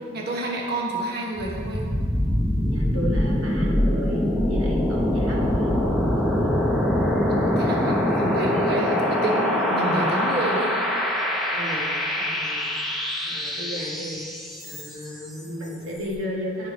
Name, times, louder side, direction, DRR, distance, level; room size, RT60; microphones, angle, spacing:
voice 1, 0.1-1.9 7.3-10.7, right 1 dB, 50° right, -2 dB, 1.1 m, -29 dB
Ambient Me, 1.4-15.2, left 1 dB, ahead, 0.7 m, -24 dB
voice 2, 2.7-6.6 9.7-10.1 11.5-11.9 12.1-12.6 13.2-14.2 14.7-16.7, equal, 85° right, -2 dB, 1.6 m, -34 dB
10.0 x 4.5 x 5.2 m, 2.2 s
head